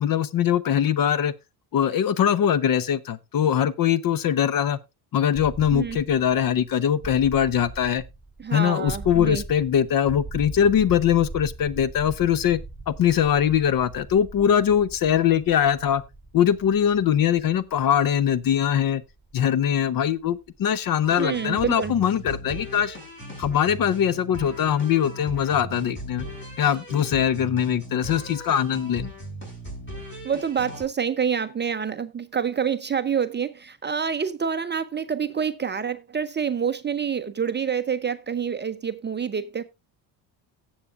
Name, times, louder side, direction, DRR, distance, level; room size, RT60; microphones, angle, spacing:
voice 1, 0.0-1.3 1.7-4.8 5.1-8.0 8.5-12.6 12.9-16.0 16.3-19.0 19.3-23.0 23.4-26.3 26.6-29.1, left 9 dB, 45° left, 0.7 m, -22 dB
sound 1, 5.3-21.2, right 2 dB, ahead, 1.0 m, -41 dB
voice 2, 8.4-9.4 21.2-21.9 30.2-39.6, right 7 dB, 20° right, 0.6 m, -27 dB
sound 2, 21.0-30.8, right 1 dB, 20° left, 6.2 m, -38 dB
17.5 x 7.2 x 2.4 m
supercardioid pair, 90°, 50 cm